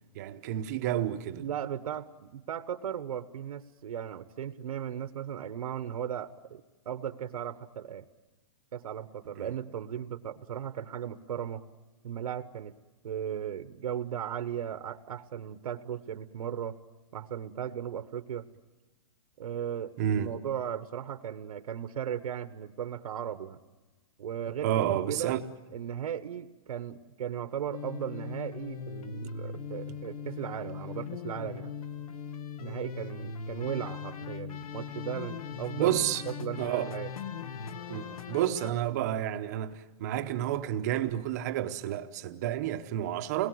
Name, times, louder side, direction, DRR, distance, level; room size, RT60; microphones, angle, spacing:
voice 1, 0.1-1.4 9.4-9.5 20.0-20.4 24.6-25.4 35.8-36.2 36.6-36.9 37.9-43.5, right 11 dB, 30° right, 0.9 m, -30 dB
voice 2, 1.4-8.1 8.7-11.6 12.0-12.7 13.0-16.8 17.1-18.4 19.4-23.6 24.2-25.4 25.7-31.8 32.6-36.6 36.9-37.1, right 9 dB, 80° right, 1.2 m, -37 dB
sound 1, 27.7-38.7, left 7 dB, 70° left, 1.5 m, -40 dB
29.5 x 21.0 x 7.8 m
hypercardioid pair, 175°, 19 cm